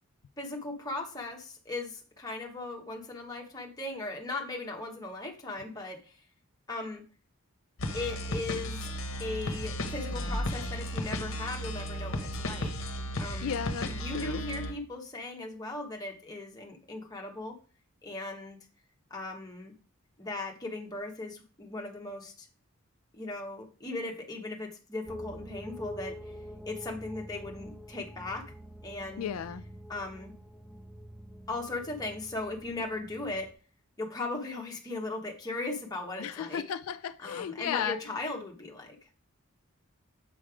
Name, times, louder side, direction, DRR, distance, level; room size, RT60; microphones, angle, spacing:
voice 1, 0.4-6.2 6.7-7.0 7.9-8.9 9.2-12.9 13.2-13.6 13.9-17.6 18.0-18.6 19.1-19.7 20.2-22.5 23.1-26.3 26.7-28.5 28.8-29.3 29.9-30.3 31.5-33.5 34.0-36.6 37.2-39.0, left 2 dB, 15° left, 1.0 m, -38 dB
sound 1, 7.8-14.7, left 1 dB, 60° left, 0.9 m, -34 dB
voice 2, 13.4-14.4 29.2-29.6 36.2-38.0, left 8 dB, 80° left, 0.4 m, -34 dB
sound 2, 25.1-33.5, equal, ahead, 0.5 m, -46 dB
7.6 x 3.1 x 4.9 m
head